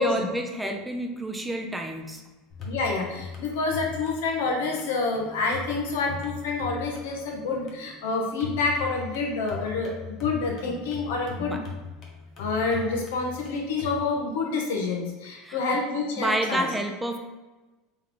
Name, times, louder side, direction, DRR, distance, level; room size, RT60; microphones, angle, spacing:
voice 1, 0.0-2.2 10.7-10.8 11.4-11.6 15.4-15.6 16.2-17.2, right 1 dB, 10° right, 4 dB, 0.4 m, -29 dB
sound 1, 2.5-14.0, left 5 dB, 40° left, 1.0 m, -40 dB
voice 2, 2.6-11.6 12.4-16.7, left 3 dB, 85° left, 0 dB, 1.0 m, -28 dB
3.2 x 3.2 x 3.9 m, 1.2 s
supercardioid pair, 125°, 0 cm